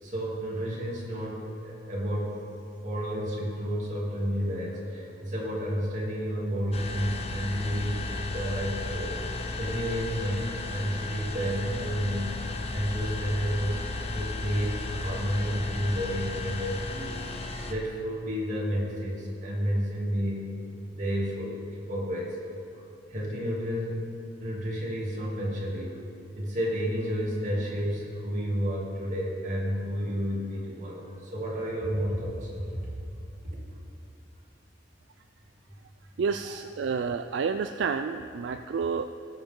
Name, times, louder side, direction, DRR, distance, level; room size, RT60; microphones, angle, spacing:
voice 1, 0.0-2.4 2.8-9.1 9.6-13.8 14.1-17.2 17.7-20.6 20.9-22.4 23.1-24.1 24.4-25.9 26.4-32.7, equal, 45° right, -5 dB, 2.8 m, -31 dB
sound 1, 6.7-17.7, left 3 dB, 35° left, 0.8 m, -35 dB
voice 2, 36.2-39.1, right 5 dB, 75° right, 8 dB, 0.4 m, -29 dB
17.5 x 7.7 x 3.8 m, 2.8 s
head